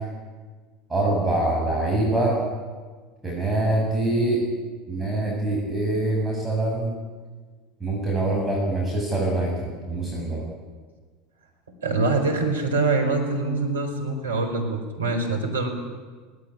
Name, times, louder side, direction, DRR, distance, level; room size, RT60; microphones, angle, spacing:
voice 1, 0.9-2.4 3.2-4.4 4.9-6.9 7.8-10.4, right 2 dB, 10° right, -3 dB, 7.5 m, -24 dB
voice 2, 11.8-15.7, right 3 dB, 85° right, 3 dB, 4.6 m, -24 dB
19.0 x 19.0 x 10.0 m, 1.4 s
hypercardioid pair, 80°, 0 cm